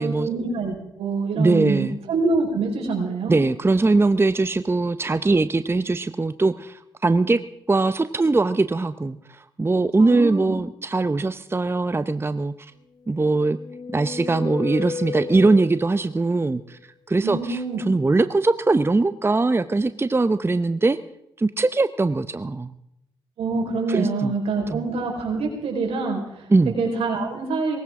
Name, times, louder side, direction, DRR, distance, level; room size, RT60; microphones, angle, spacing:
voice 1, 0.0-3.3 10.0-10.5 17.2-17.8 23.4-27.8, right 3 dB, 75° right, 0 dB, 4.7 m, -26 dB
voice 2, 1.3-2.0 3.3-7.4 7.7-12.7 13.1-13.6 13.9-16.8 17.1-21.0 21.4-22.7 23.9-24.3 24.7-24.8 26.5-26.7, right 3 dB, 25° right, 12 dB, 0.7 m, -21 dB
sound 1, 13.1-16.2, left 5 dB, 40° left, 1.2 m, -34 dB
19.0 x 17.0 x 3.7 m, 0.80 s
supercardioid pair, 45°, 10 cm